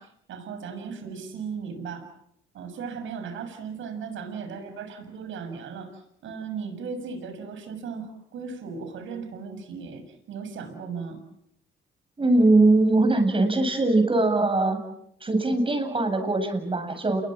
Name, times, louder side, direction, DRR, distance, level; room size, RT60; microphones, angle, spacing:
voice 1, 0.0-2.1 2.5-11.2, right 5 dB, 75° right, 8 dB, 6.9 m, -37 dB
voice 2, 12.2-14.8 15.2-17.2, right 2 dB, 25° right, 6 dB, 7.6 m, -21 dB
30.0 x 22.5 x 7.6 m, 0.75 s
cardioid pair, 90°, 20 cm